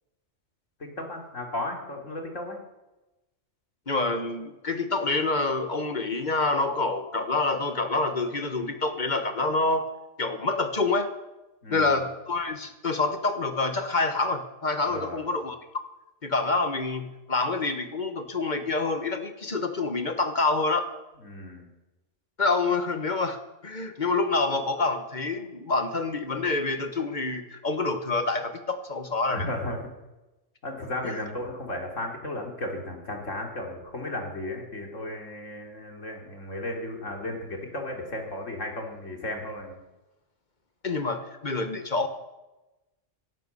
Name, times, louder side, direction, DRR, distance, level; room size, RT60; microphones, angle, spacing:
voice 1, 0.8-2.6 11.6-12.0 14.9-15.2 21.2-21.7 29.3-29.8 30.6-39.8, left 1 dB, 85° left, 1 dB, 3.5 m, -35 dB
voice 2, 3.9-9.9 10.2-11.1 11.7-15.6 16.2-20.9 22.4-29.5 31.0-31.2 40.8-42.1, left 3 dB, 40° left, 8 dB, 1.4 m, -27 dB
17.0 x 11.5 x 6.9 m, 1.0 s
omnidirectional pair, 1.3 m